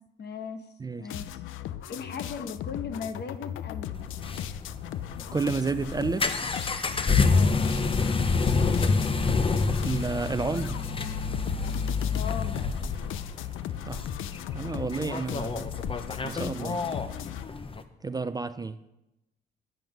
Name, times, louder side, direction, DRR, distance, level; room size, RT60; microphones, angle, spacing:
voice 1, 0.2-1.4 1.9-4.0 7.3-7.7 12.0-12.7, left 6 dB, 55° left, 1.1 m, -38 dB
sound 1, 1.1-17.5, left 12 dB, 80° left, 0.5 m, -38 dB
sound 2, 4.0-17.8, left 4 dB, 25° left, 0.7 m, -28 dB
voice 2, 5.3-6.5 9.8-10.8 13.8-14.0 14.5-15.8 16.2-16.8 18.0-18.8, right 4 dB, 20° right, 0.4 m, -31 dB
9.1 x 7.7 x 5.3 m
cardioid pair, 90°, 20 cm